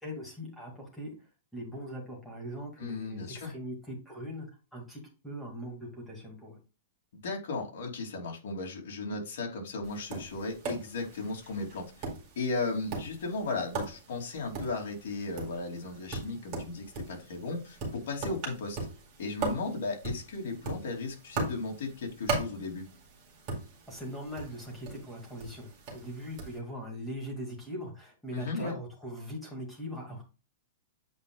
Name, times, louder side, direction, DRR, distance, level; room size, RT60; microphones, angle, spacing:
voice 1, 0.0-1.1 1.5-6.6 23.9-30.2, equal, ahead, -3 dB, 2.1 m, -41 dB
voice 2, 2.8-3.5 7.1-12.1 12.4-18.8 19.2-22.9 28.3-28.7, left 3 dB, 65° left, 1 dB, 2.6 m, -36 dB
Tap, 9.8-26.6, right 3 dB, 30° right, 2.3 m, -39 dB
8.2 x 5.0 x 2.3 m, 0.31 s
supercardioid pair, 175°, 0 cm